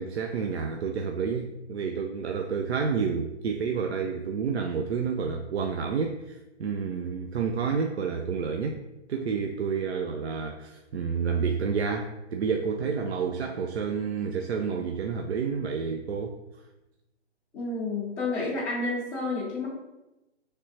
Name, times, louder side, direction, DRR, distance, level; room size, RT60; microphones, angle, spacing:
voice 1, 0.0-8.8 9.1-16.4, right 6 dB, 70° right, 4 dB, 0.5 m, -29 dB
voice 2, 17.5-19.7, left 3 dB, 5° left, -14 dB, 0.6 m, -30 dB
4.9 x 3.3 x 2.8 m, 0.97 s
hypercardioid pair, 145°, 34 cm